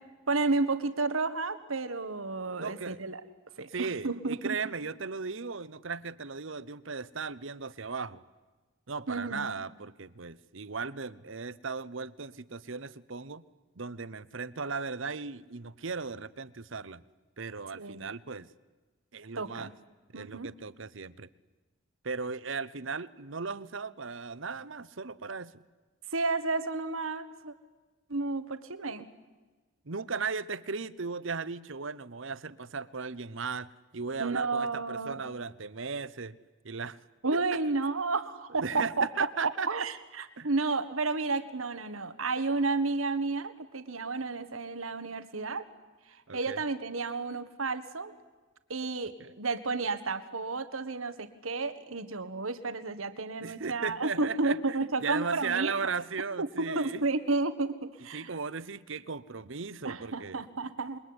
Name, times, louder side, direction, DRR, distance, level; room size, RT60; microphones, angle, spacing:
voice 1, 0.3-3.2 3.6-4.6 9.1-9.5 17.7-18.1 19.3-19.7 20.1-20.5 26.1-27.5 28.1-29.1 34.2-35.2 37.2-39.1 39.7-45.6 46.3-48.1 48.7-55.7 56.4-58.3 59.8-61.0, right 3 dB, 90° right, 11 dB, 1.7 m, -31 dB
voice 2, 2.6-3.0 3.7-8.2 8.9-13.4 13.8-17.0 17.4-18.5 19.1-19.7 20.1-21.3 22.0-25.6 29.9-36.4 36.6-37.0 37.3-37.6 38.6-39.9 40.4-40.5 46.3-46.6 49.2-49.3 53.4-57.0 58.1-60.5, right 5 dB, 70° right, 17 dB, 0.9 m, -37 dB
27.5 x 22.5 x 9.8 m, 1.3 s
head